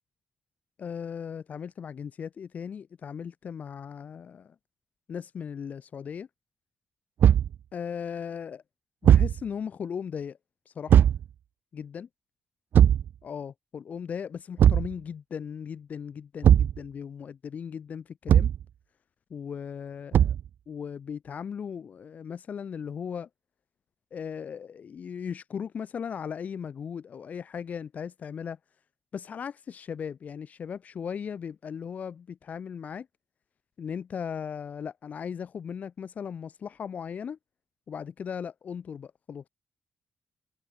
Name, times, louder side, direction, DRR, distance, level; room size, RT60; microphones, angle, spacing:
voice 1, 0.8-4.5 5.1-6.3 7.7-8.6 9.0-10.4 10.7-11.0 11.7-12.1 13.2-18.5 19.3-20.4 20.7-23.3 24.1-28.6 29.1-33.1 33.8-37.4 37.9-39.5, left 7 dB, 45° left, 7.8 m, -37 dB
Thump thud, 7.2-7.6 9.0-9.4 10.9-11.2 12.7-13.1 14.6-14.9 16.4-16.8 18.3-18.6 20.1-20.5, right 10 dB, 70° right, 0.9 m, -18 dB
wide cardioid pair, 175°, 4 cm